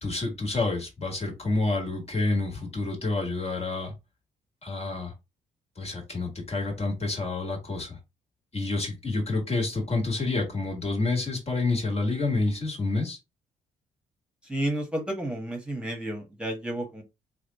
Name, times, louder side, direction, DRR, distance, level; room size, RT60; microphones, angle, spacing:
voice 1, 0.0-3.9 4.6-5.1 5.8-8.0 8.5-13.2, left 3 dB, 35° left, 1 dB, 1.9 m, -28 dB
voice 2, 14.4-17.0, right 1 dB, 5° right, 2 dB, 1.4 m, -31 dB
3.2 x 2.5 x 4.1 m, 0.24 s
hypercardioid pair, 50°, 18 cm